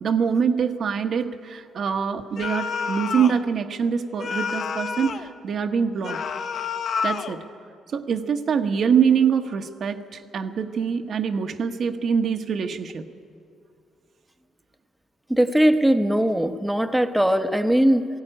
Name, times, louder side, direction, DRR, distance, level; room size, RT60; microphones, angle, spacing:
voice 1, 0.0-6.2 7.0-7.4 7.9-13.0, right 7 dB, 60° right, 6 dB, 1.0 m, -24 dB
sound 1, 2.4-3.4 4.2-5.3 6.0-7.4, left 6 dB, 60° left, 0.8 m, -29 dB
voice 2, 15.3-18.1, right 1 dB, 5° right, 6 dB, 0.8 m, -20 dB
17.0 x 15.5 x 9.9 m, 2.4 s
cardioid pair, 90°, 0 cm